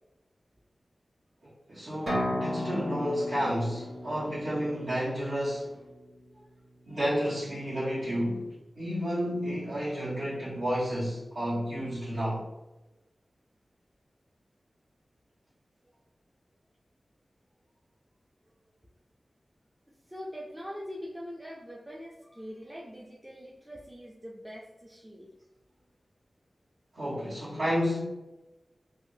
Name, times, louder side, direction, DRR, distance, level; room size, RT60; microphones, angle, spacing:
voice 1, 1.4-5.7 6.9-12.5 26.9-28.0, equal, 70° right, 1.3 m, -31 dB
sound 1, 2.1-5.8, equal, 40° right, 1.2 m, -35 dB
voice 2, 19.9-25.3, equal, 15° right, 0.4 m, -43 dB
3.4 x 2.1 x 2.6 m
wide cardioid pair, 100°, 0 cm